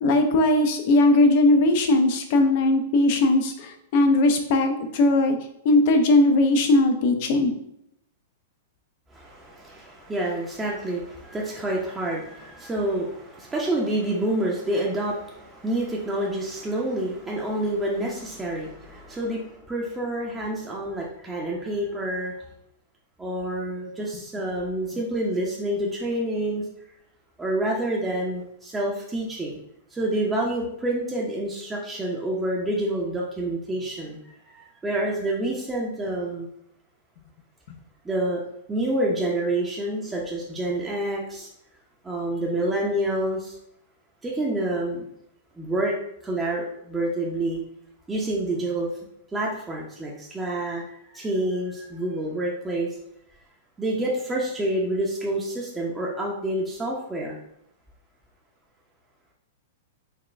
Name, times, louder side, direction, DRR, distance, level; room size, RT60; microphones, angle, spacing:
voice 1, 0.0-5.4 5.6-7.5 37.7-37.8, left 2 dB, 55° left, 6 dB, 0.6 m, -19 dB
voice 2, 9.1-22.4 23.2-26.6 27.4-29.6 29.9-36.5 38.0-38.4 38.7-41.5 42.0-43.6 44.2-45.1 45.6-46.0 46.2-47.6 48.1-48.9 49.3-52.9 53.8-57.4, right 1 dB, 15° right, -3 dB, 0.7 m, -28 dB
4.1 x 2.3 x 3.4 m, 0.77 s
hypercardioid pair, 110°, 0 cm